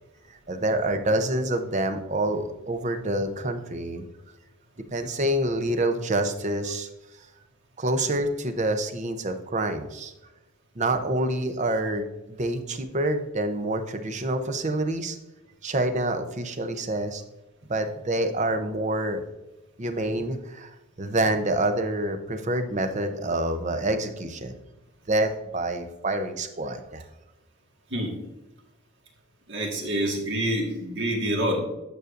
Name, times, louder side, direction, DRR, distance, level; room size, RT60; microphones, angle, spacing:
voice 1, 0.5-4.1 4.9-6.9 7.8-10.1 10.8-12.1 12.4-15.2 15.6-17.2 17.7-19.2 19.8-24.5 25.1-27.0, right 1 dB, 30° right, 8 dB, 0.6 m, -27 dB
voice 2, 29.5-31.6, right 1 dB, 50° right, 0 dB, 1.6 m, -27 dB
9.2 x 6.5 x 2.5 m, 1.0 s
head